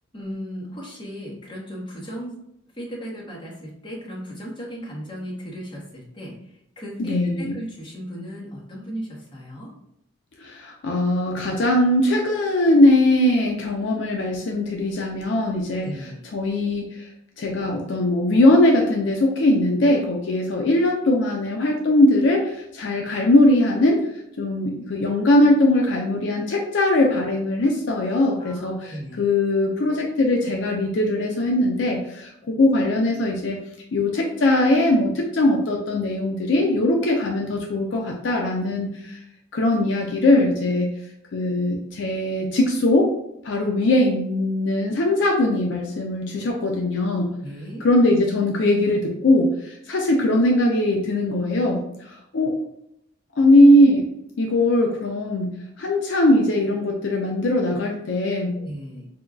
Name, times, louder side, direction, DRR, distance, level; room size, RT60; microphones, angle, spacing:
voice 1, 0.1-2.3 2.7-9.7 15.8-16.2 28.4-29.2 47.4-47.9 58.6-59.1, equal, 25° left, -4 dB, 0.9 m, -36 dB
voice 2, 7.0-7.5 10.4-15.9 16.3-17.1 17.4-24.1 24.4-33.6 33.9-39.2 39.5-40.9 41.3-43.1 43.4-47.3 47.8-52.6 53.4-54.1 54.4-55.5 55.8-58.6, left 1 dB, 65° left, 1 dB, 0.4 m, -20 dB
5.0 x 2.2 x 2.3 m, 0.79 s
head